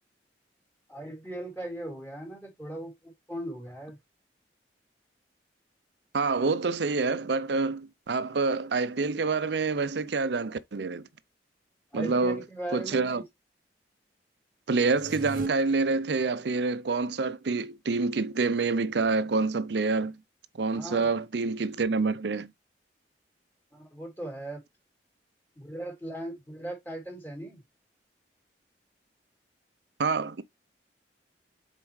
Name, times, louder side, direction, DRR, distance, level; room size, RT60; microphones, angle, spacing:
voice 1, 0.9-4.0 11.9-13.2 20.7-21.1 23.7-24.6 25.6-27.6, right 1 dB, 15° left, 3.0 m, -38 dB
voice 2, 6.1-11.1 11.9-12.4 12.7-13.2 14.7-20.2 20.6-22.5 30.0-30.4, right 4 dB, 70° right, 0.6 m, -27 dB
sound 1, 14.9-15.5, right 2 dB, 50° right, 1.1 m, -39 dB
7.2 x 4.5 x 3.1 m
head